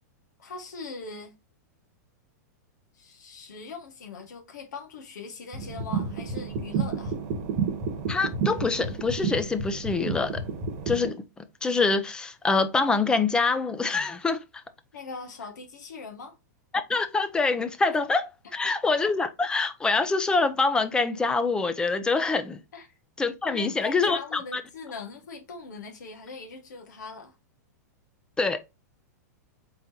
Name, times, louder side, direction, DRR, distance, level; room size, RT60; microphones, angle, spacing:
voice 1, 0.4-1.3 2.9-7.1 14.9-16.3 18.6-18.7 22.7-22.9 23.5-27.3, left 4 dB, 85° left, 1.5 m, -41 dB
sound 1, 5.5-11.1, right 5 dB, 40° right, 1.1 m, -30 dB
voice 2, 8.1-10.4 10.9-11.2 11.6-14.4 16.9-22.6 23.2-24.6 28.4-28.6, left 4 dB, 10° left, 0.4 m, -25 dB
4.4 x 3.8 x 2.7 m
supercardioid pair, 145°, 9 cm